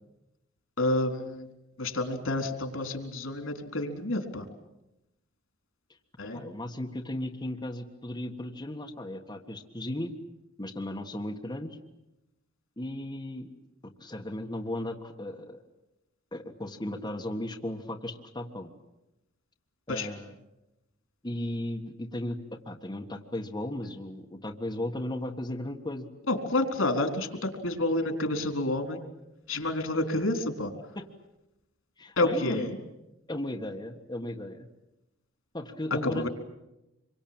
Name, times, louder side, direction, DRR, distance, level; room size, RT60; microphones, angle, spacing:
voice 1, 0.8-1.5 1.8-4.5 6.2-6.4 19.9-20.1 26.3-29.0 29.5-30.7 32.2-32.8 36.0-36.3, left 2 dB, 85° left, 6 dB, 4.0 m, -29 dB
voice 2, 6.3-10.1 10.6-11.8 12.8-13.5 13.8-15.6 16.3-18.7 19.9-20.3 21.2-26.1 30.9-31.0 32.0-32.6 33.3-34.7 35.5-36.3, left 1 dB, 20° left, 2 dB, 1.6 m, -36 dB
26.0 x 24.0 x 8.8 m, 0.95 s
head